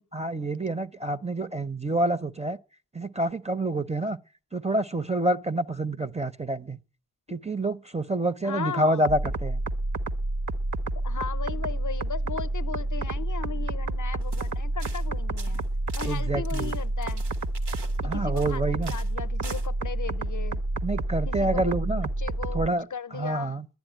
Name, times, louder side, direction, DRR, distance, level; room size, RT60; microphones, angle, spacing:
voice 1, 0.1-2.6 2.9-4.2 4.5-6.8 7.3-9.6 16.0-16.7 18.0-18.9 20.8-22.1 22.5-23.7, right 1 dB, 15° right, 0.6 m, -27 dB
voice 2, 8.4-9.1 11.0-15.6 16.0-17.2 18.0-20.6 21.3-23.6, left 7 dB, 50° left, 0.6 m, -37 dB
sound 1, 9.0-22.7, right 2 dB, 50° right, 0.9 m, -29 dB
sound 2, 14.2-14.5 14.8-15.1 15.4-18.6 18.8-19.1 19.4-19.7, right 4 dB, 75° right, 1.6 m, -44 dB
11.5 x 10.5 x 9.1 m
wide cardioid pair, 75°, 40 cm